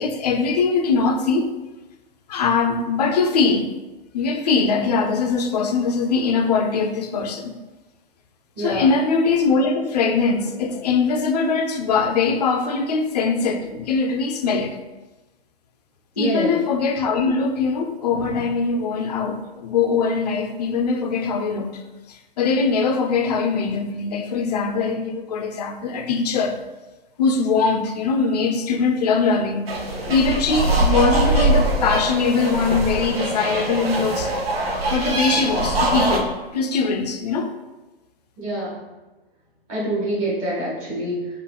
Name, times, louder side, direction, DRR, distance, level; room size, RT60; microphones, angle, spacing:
voice 1, 0.0-1.5 2.3-3.7 4.1-7.5 8.6-14.8 16.2-21.8 22.1-26.6 27.2-29.7 30.1-34.3 34.9-37.5, left 4 dB, 45° left, 0.4 m, -21 dB
voice 2, 8.6-8.9 16.1-16.5 38.4-38.8 39.7-41.3, right 1 dB, 25° right, 1.4 m, -25 dB
sound 1, 29.7-36.2, right 2 dB, 75° right, 0.7 m, -22 dB
4.6 x 2.4 x 2.3 m
figure-of-eight pair, 115°, 31 cm